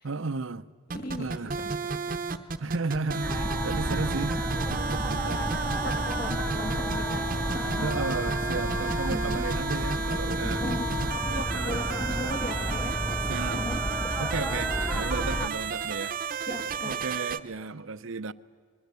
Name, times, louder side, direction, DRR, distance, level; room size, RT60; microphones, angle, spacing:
voice 1, 0.0-0.7 1.2-1.5 2.6-4.4 4.7-5.4 7.8-10.6 11.3-11.8 13.3-13.7 14.2-16.2 16.8-18.3, right 4 dB, 85° right, 0.7 m, -34 dB
voice 2, 0.9-2.2 5.3-5.5 5.8-7.2 7.5-7.9 9.1-9.4 10.4-13.0 13.5-13.8 16.5-17.0, left 1 dB, 50° left, 2.9 m, -37 dB
sound 1, 0.9-17.4, right 5 dB, 45° right, 0.9 m, -32 dB
sound 2, 3.2-15.5, equal, 5° left, 0.9 m, -31 dB
24.0 x 22.5 x 8.2 m
head